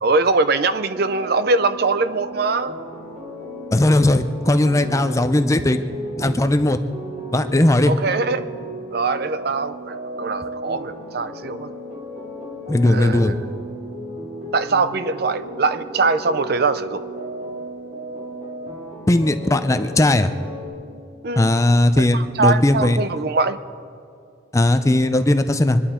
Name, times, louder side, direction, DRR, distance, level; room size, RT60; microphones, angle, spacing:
voice 1, 0.0-2.8 7.9-8.5 8.9-11.7 12.8-13.3 14.5-17.0 21.2-21.5 22.0-23.6, right 3 dB, 50° right, 12 dB, 0.5 m, -22 dB
sound 1, 0.7-20.7, right 1 dB, 35° right, 2.3 m, -34 dB
voice 2, 3.7-5.8 6.2-6.8 7.3-7.9 12.7-13.3 19.1-20.3 21.4-23.0 24.5-25.8, left 1 dB, 15° left, 9 dB, 0.5 m, -17 dB
24.5 x 11.5 x 4.3 m, 2.5 s
head